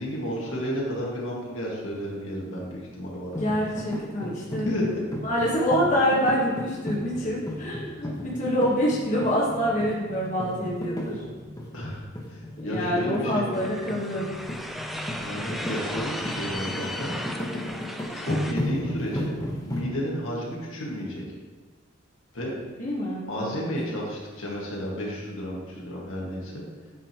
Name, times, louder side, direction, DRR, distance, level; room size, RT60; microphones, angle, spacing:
voice 1, 0.0-3.4 4.6-4.9 11.7-13.6 15.2-17.2 17.6-17.7 18.1-19.3 19.6-21.2 22.3-22.5 23.3-26.6, equal, 80° left, -4 dB, 1.7 m, -32 dB
voice 2, 3.4-4.7 5.2-11.2 12.6-14.3 22.8-23.7, equal, 40° left, -5 dB, 1.1 m, -26 dB
sound 1, 3.4-19.8, left 1 dB, 20° left, 0.9 m, -34 dB
sound 2, 13.5-18.5, equal, ahead, 0.3 m, -36 dB
8.8 x 5.1 x 2.9 m, 1.4 s
head